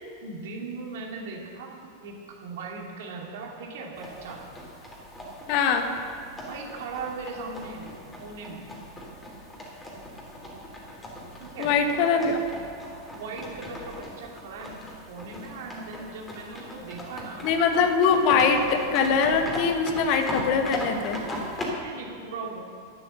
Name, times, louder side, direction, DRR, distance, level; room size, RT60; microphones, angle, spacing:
voice 1, 0.2-1.7 2.0-4.4 6.5-8.7 11.4-11.7 13.1-17.5 21.8-22.6, right 4 dB, 55° right, 0 dB, 2.7 m, -38 dB
sound 1, 3.9-21.7, equal, 10° left, 3.1 m, -39 dB
voice 2, 5.5-5.9 11.6-12.4 17.4-21.2, left 5 dB, 45° left, 6 dB, 1.3 m, -22 dB
12.0 x 11.5 x 6.7 m, 2.7 s
figure-of-eight pair, 90°, 0 cm